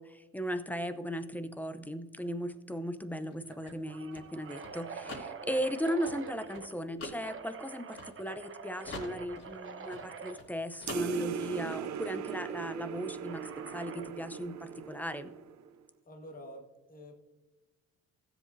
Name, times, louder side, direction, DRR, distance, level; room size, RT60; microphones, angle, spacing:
voice 1, 0.0-15.3, equal, 5° left, 10 dB, 0.7 m, -37 dB
sound 1, 2.2-2.5 2.8-2.9 3.5-6.7 7.2-10.4 11.7-12.1 13.3-14.2, right 5 dB, 45° right, 1.0 m, -46 dB
sound 2, 3.2-8.5 8.8-10.5 10.8-11.5, left 2 dB, 55° left, 3.0 m, -46 dB
sound 3, 10.9-15.7, right 8 dB, 65° right, 0.6 m, -39 dB
voice 2, 16.0-17.1, equal, 30° left, 2 dB, 1.7 m, -48 dB
16.5 x 7.6 x 2.7 m, 1.2 s
cardioid pair, 90°, 30 cm